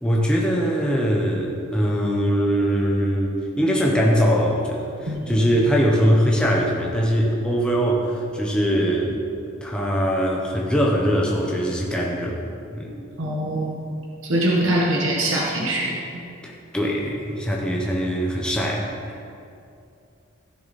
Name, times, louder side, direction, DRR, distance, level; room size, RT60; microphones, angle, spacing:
voice 1, 0.0-9.2 9.6-12.4 12.7-13.0 16.4-19.2, equal, 5° left, -3 dB, 1.0 m, -22 dB
voice 2, 5.1-5.5 13.2-13.9 14.2-16.2, right 1 dB, 75° right, -2 dB, 1.3 m, -23 dB
16.0 x 6.6 x 4.2 m, 2.5 s
head